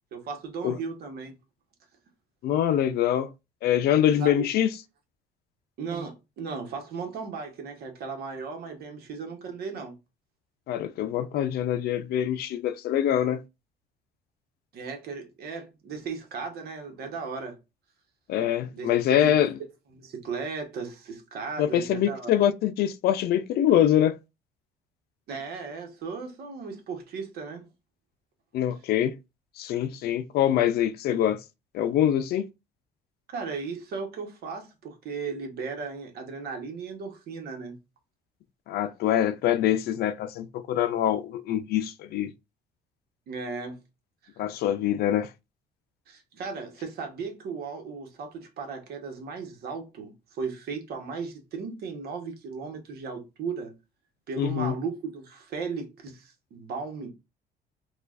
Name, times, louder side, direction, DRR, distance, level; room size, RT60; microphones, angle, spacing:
voice 1, 0.1-1.4 4.2-4.3 5.8-10.0 14.7-17.6 18.7-19.5 19.9-22.3 25.3-27.7 33.3-37.8 43.3-43.8 46.1-53.7 54.3-57.1, right 5 dB, 70° right, 1.1 m, -36 dB
voice 2, 2.4-3.3 3.6-4.7 10.7-13.4 18.3-19.5 21.6-24.2 28.5-29.2 29.6-31.4 31.7-32.4 38.7-42.3 44.4-45.3 54.4-54.7, left 11 dB, 70° left, 0.5 m, -24 dB
4.4 x 2.4 x 2.5 m
cardioid pair, 110°, 17 cm